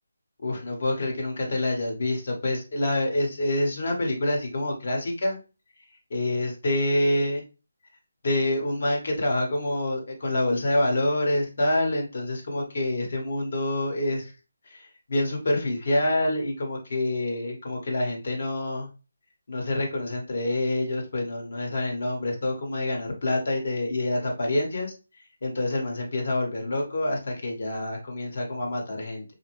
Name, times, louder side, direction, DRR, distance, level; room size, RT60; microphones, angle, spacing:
voice 1, 0.4-5.4 6.1-7.4 8.2-14.3 14.7-18.9 19.5-24.9 25.4-29.2, left 1 dB, 55° left, 1 dB, 1.4 m, -27 dB
4.7 x 2.1 x 3.1 m, 0.30 s
figure-of-eight pair, 155°, 0 cm